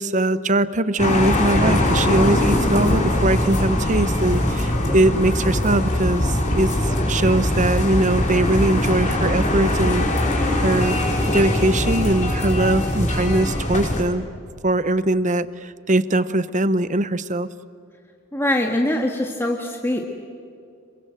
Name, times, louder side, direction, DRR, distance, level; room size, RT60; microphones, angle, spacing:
voice 1, 0.0-6.7 7.1-10.1 10.6-11.0 11.3-14.3 14.6-17.5, right 1 dB, 35° right, 14 dB, 0.8 m, -21 dB
sound 1, 1.0-14.0, left 1 dB, 35° left, 3.8 m, -21 dB
voice 2, 18.3-20.0, left 1 dB, 10° left, 1 dB, 1.6 m, -22 dB
27.0 x 23.5 x 7.7 m, 2.5 s
head